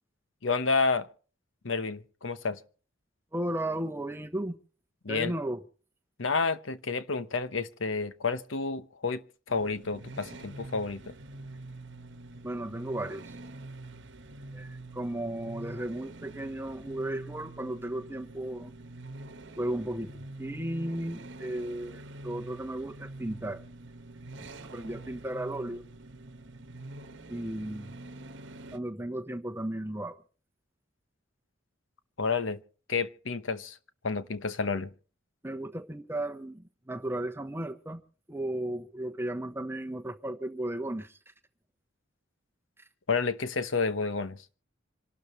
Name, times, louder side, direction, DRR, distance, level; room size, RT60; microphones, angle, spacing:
voice 1, 0.4-1.1 1.6-2.6 5.0-5.3 6.2-9.2 9.5-11.1 32.2-32.6 32.9-33.8 34.0-34.9 43.1-44.4, left 4 dB, 80° left, 1.0 m, -30 dB
voice 2, 3.3-4.6 5.1-5.6 12.4-13.3 14.5-18.7 19.6-20.1 20.4-23.6 24.4-24.5 24.7-25.8 27.3-27.9 28.7-30.2 35.4-38.0 38.3-41.3, right 1 dB, 10° right, 1.1 m, -35 dB
sound 1, 9.5-28.8, right 2 dB, 65° right, 1.2 m, -45 dB
26.5 x 12.5 x 3.2 m
head